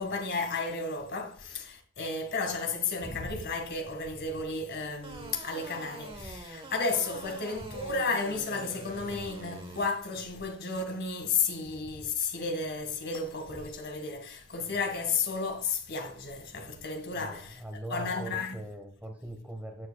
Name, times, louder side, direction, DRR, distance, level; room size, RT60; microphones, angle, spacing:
voice 1, 0.0-17.6 17.9-18.6, left 4 dB, 50° left, 2.0 m, -33 dB
sound 1, 3.0-18.1, left 1 dB, 25° left, 1.7 m, -51 dB
sound 2, 5.0-9.9, right 2 dB, 25° right, 1.2 m, -45 dB
voice 2, 17.1-19.9, right 1 dB, 5° right, 1.4 m, -41 dB
13.0 x 9.5 x 2.4 m
head